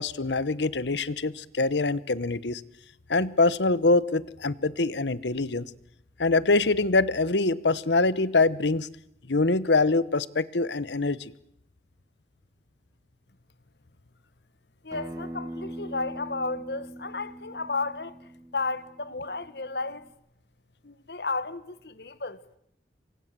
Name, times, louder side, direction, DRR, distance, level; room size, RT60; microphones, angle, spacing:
voice 1, 0.0-2.6 3.1-5.7 6.2-8.9 9.3-11.3, left 3 dB, 85° left, 1.1 m, -24 dB
voice 2, 14.8-20.1 20.8-22.6, left 3 dB, 65° left, 1.5 m, -33 dB
Acoustic guitar, 14.9-20.1, right 1 dB, 20° right, 3.0 m, -42 dB
28.0 x 24.0 x 7.7 m
head